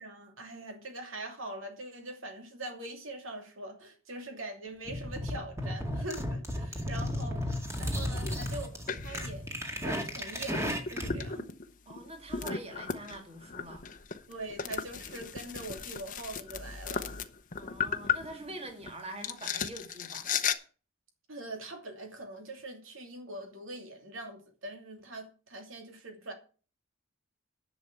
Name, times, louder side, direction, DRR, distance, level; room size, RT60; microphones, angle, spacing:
voice 1, 0.0-8.7 9.0-9.4 9.7-11.5 14.3-17.2 21.3-26.3, right 1 dB, 75° right, 2.8 m, -43 dB
sound 1, 4.8-11.3, equal, 15° right, 2.0 m, -34 dB
sound 2, 8.1-8.4 8.9-9.3 10.1-10.2 10.5-18.9 19.2-20.5, left 7 dB, 40° left, 0.9 m, -35 dB
voice 2, 11.9-13.8 17.6-20.3, right 1 dB, 30° right, 1.8 m, -44 dB
10.5 x 6.4 x 8.1 m
head